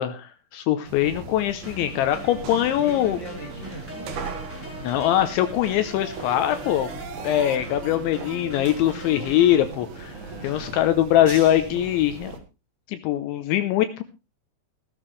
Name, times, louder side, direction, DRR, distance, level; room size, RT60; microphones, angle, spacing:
voice 1, 0.0-3.2 4.8-6.9 7.2-10.1 10.4-12.3 12.9-14.0, left 12 dB, 80° left, 9 dB, 2.8 m, -22 dB
sound 1, 0.8-12.4, right 4 dB, 60° right, 3.1 m, -39 dB
sound 2, 1.6-9.6, equal, 5° right, 2.6 m, -41 dB
voice 2, 2.8-4.1 7.1-7.7 10.1-11.0, right 1 dB, 45° right, 0 dB, 1.5 m, -41 dB
sound 3, 5.6-7.6 7.8-8.0 8.2-8.4 8.6-8.8 9.0-9.2 9.4-9.6 9.8-10.0 10.2-10.4 10.7-10.8, right 8 dB, 85° right, 4.3 m, -43 dB
16.0 x 13.5 x 3.2 m, 0.28 s
omnidirectional pair, 6.0 m